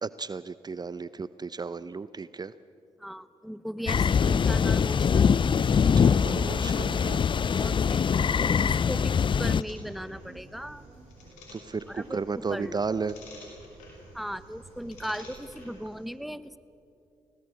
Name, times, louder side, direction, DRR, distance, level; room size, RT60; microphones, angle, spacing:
voice 1, 0.0-2.5 5.7-7.2 11.5-13.2, right 4 dB, 35° right, 15 dB, 0.7 m, -34 dB
voice 2, 3.0-5.4 7.6-8.1 8.6-10.8 11.9-12.8 14.1-16.6, equal, ahead, 15 dB, 1.0 m, -37 dB
sound 1, 3.9-9.6, left 6 dB, 40° left, 0.5 m, -23 dB
sound 2, 4.3-15.7, right 3 dB, 70° right, 5.0 m, -52 dB
sound 3, 9.6-16.1, left 3 dB, 85° left, 5.5 m, -53 dB
25.0 x 18.5 x 8.4 m, 2.7 s
hypercardioid pair, 45°, 12 cm